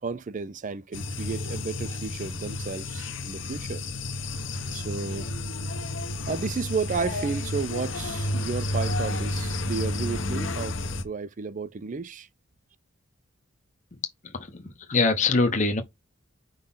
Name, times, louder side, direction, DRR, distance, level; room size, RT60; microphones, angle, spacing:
voice 1, 0.0-3.8 4.7-5.3 6.3-12.3, right 4 dB, 40° right, 0.4 m, -32 dB
sound 1, 0.9-11.0, left 2 dB, 65° left, 1.0 m, -31 dB
voice 2, 14.3-15.8, left 3 dB, 35° left, 0.9 m, -24 dB
5.2 x 4.0 x 5.5 m
head